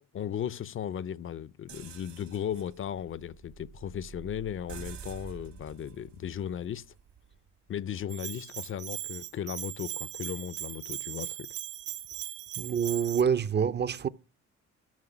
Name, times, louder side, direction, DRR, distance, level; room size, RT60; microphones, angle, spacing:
voice 1, 0.1-6.9 7.7-11.5, left 9 dB, 45° left, 0.5 m, -36 dB
sound 1, 1.7-7.5, right 7 dB, 65° right, 1.7 m, -48 dB
Bell, 8.1-13.2, right 14 dB, 80° right, 0.9 m, -39 dB
voice 2, 12.6-14.1, right 7 dB, 35° right, 0.5 m, -27 dB
13.5 x 5.3 x 5.9 m
cardioid pair, 90°, 30 cm